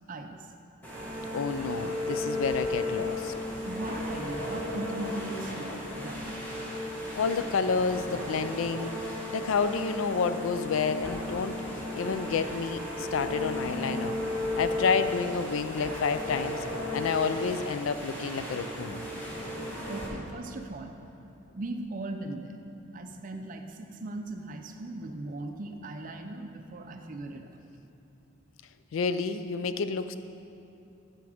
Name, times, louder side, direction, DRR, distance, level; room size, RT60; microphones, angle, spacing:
voice 1, 0.1-0.5 3.7-6.3 19.9-20.9 21.5-22.6 22.9-27.5, right 2 dB, 40° right, 5 dB, 0.5 m, -38 dB
sound 1, 0.8-20.1, left 1 dB, 10° left, 1.3 m, -34 dB
voice 2, 1.3-3.3 7.2-8.9 9.3-14.2 14.5-16.6 16.9-19.1 28.9-30.2, left 5 dB, 75° left, 11 dB, 0.4 m, -29 dB
11.0 x 4.6 x 4.9 m, 2.8 s
head